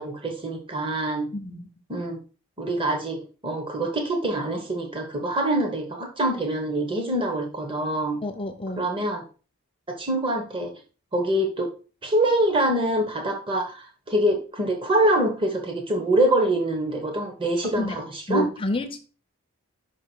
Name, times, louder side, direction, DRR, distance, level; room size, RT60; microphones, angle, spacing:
voice 1, 0.0-1.3 1.9-2.2 2.6-8.2 8.8-9.2 9.9-10.7 11.1-11.7 12.0-18.5, right 1 dB, 25° right, 3 dB, 1.2 m, -25 dB
voice 2, 1.3-1.6 8.2-8.9 17.7-18.0 18.3-19.0, left 1 dB, 25° left, 7 dB, 0.6 m, -28 dB
5.7 x 4.9 x 4.5 m, 0.35 s
head